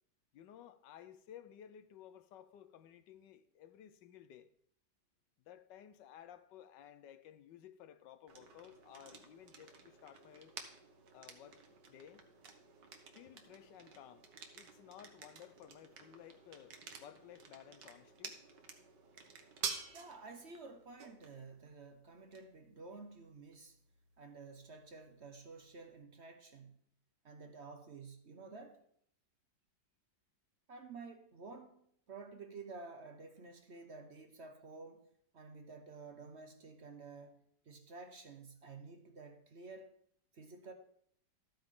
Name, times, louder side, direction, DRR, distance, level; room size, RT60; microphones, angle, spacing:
voice 1, 0.3-4.5 5.5-10.5 11.1-12.3 13.1-14.3 14.5-18.4, left 10 dB, 90° left, 1.4 m, -56 dB
sound 1, 8.3-26.0, right 6 dB, 75° right, 1.8 m, -51 dB
voice 2, 19.9-23.8 24.2-26.8 27.2-28.8 30.7-35.1 35.3-39.9 40.3-40.7, right 4 dB, 50° right, 1.0 m, -52 dB
13.0 x 8.9 x 3.7 m
omnidirectional pair, 1.9 m